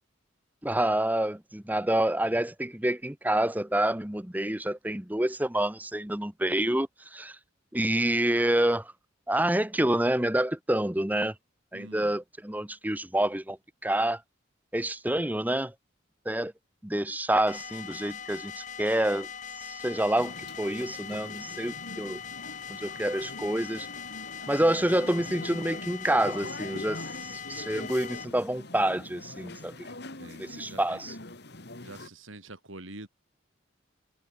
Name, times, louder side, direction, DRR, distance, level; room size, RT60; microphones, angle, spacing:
voice 1, 0.6-7.4 7.7-8.9 9.3-11.3 11.7-13.6 13.8-14.2 14.7-15.7 16.2-16.5 16.8-19.3 19.6-22.2 22.7-23.9 24.5-29.9 30.4-31.1, right 1 dB, 10° right, 1.1 m, -28 dB
voice 2, 11.7-12.2 30.2-31.1 31.8-33.1, right 2 dB, 80° right, 3.7 m, -46 dB
sound 1, 17.5-28.3, left 7 dB, 40° left, 2.2 m, -41 dB
sound 2, 20.2-32.1, left 2 dB, 55° left, 3.2 m, -43 dB
head